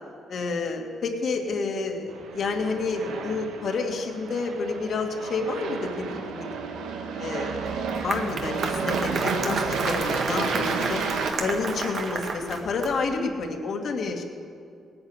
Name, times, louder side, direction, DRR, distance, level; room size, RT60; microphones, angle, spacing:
voice 1, 0.3-6.5 7.2-7.7 8.0-11.0 11.4-14.2, left 4 dB, 60° left, 2 dB, 2.2 m, -29 dB
Aircraft, 2.1-11.3, right 5 dB, 90° right, 1.4 m, -32 dB
Applause, 7.7-13.1, right 3 dB, 55° right, 1.7 m, -31 dB
18.0 x 9.7 x 8.1 m, 2.4 s
cardioid pair, 90°, 0 cm